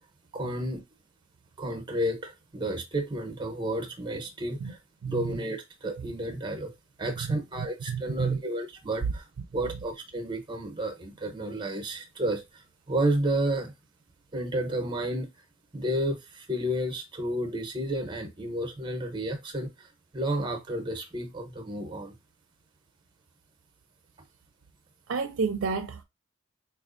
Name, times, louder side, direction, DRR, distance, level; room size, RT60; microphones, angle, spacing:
voice 1, 0.3-0.8 1.6-4.8 5.1-6.7 7.0-9.2 9.5-12.6 12.9-13.7 14.3-15.3 15.7-19.9 20.1-22.1, right 1 dB, 20° right, 0.7 m, -31 dB
voice 2, 5.0-5.3 7.2-8.4 9.0-9.1 9.4-9.5 25.1-26.0, right 5 dB, 65° right, 0.4 m, -30 dB
4.3 x 2.4 x 2.5 m
head